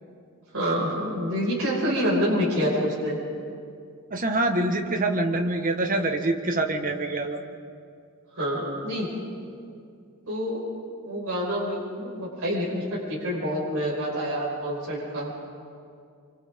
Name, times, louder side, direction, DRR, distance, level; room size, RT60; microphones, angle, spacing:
voice 1, 0.5-3.2 8.3-9.1 10.3-10.6 11.0-12.8 13.1-15.3, equal, 75° right, -6 dB, 6.1 m, -27 dB
voice 2, 4.1-7.4, right 2 dB, 40° right, 4 dB, 1.6 m, -25 dB
28.0 x 26.0 x 3.8 m, 2.4 s
head